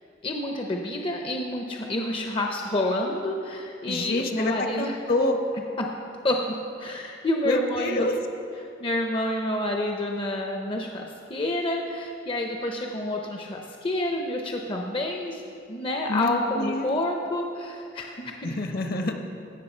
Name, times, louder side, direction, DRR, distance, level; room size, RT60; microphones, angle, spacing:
voice 1, 0.2-5.0 5.8-5.9 6.2-8.1 8.8-15.4 15.7-18.6, left 1 dB, 30° left, 2 dB, 0.6 m, -28 dB
voice 2, 3.9-5.4 7.4-8.2 16.1-16.9 18.4-19.1, left 2 dB, 55° left, 5 dB, 0.9 m, -27 dB
16.0 x 6.2 x 4.4 m, 2.7 s
head